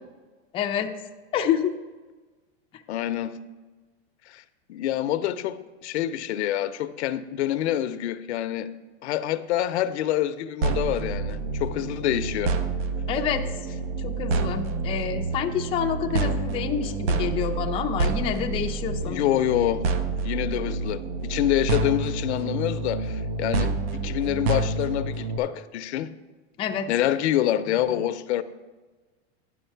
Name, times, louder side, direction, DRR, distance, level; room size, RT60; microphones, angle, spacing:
voice 1, 0.5-0.9 1.3-1.7 13.1-13.5 14.0-19.4 26.6-26.9, left 8 dB, 15° left, 0.4 m, -28 dB
voice 2, 2.9-3.4 4.3-4.4 4.7-8.7 9.0-12.5 19.0-19.9 20.2-26.1 26.9-28.4, left 12 dB, 85° left, 0.6 m, -26 dB
sound 1, 10.6-25.4, right 3 dB, 70° right, 0.8 m, -28 dB
10.0 x 6.3 x 4.5 m
supercardioid pair, 140°, 33 cm